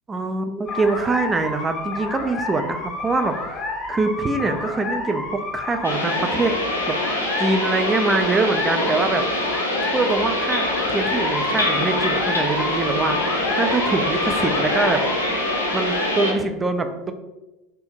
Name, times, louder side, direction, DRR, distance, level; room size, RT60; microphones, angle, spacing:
voice 1, 0.1-3.5 3.9-6.6 6.9-7.0 7.4-9.3 9.9-10.7 10.9-15.0 15.7-17.1, right 3 dB, 20° right, 7 dB, 0.3 m, -24 dB
sound 1, 0.7-16.1, left 2 dB, 35° left, 0.6 m, -29 dB
sound 2, 5.8-16.3, left 1 dB, 85° left, 0.6 m, -24 dB
2.8 x 2.6 x 3.5 m, 1.0 s
figure-of-eight pair, 75°, 0 cm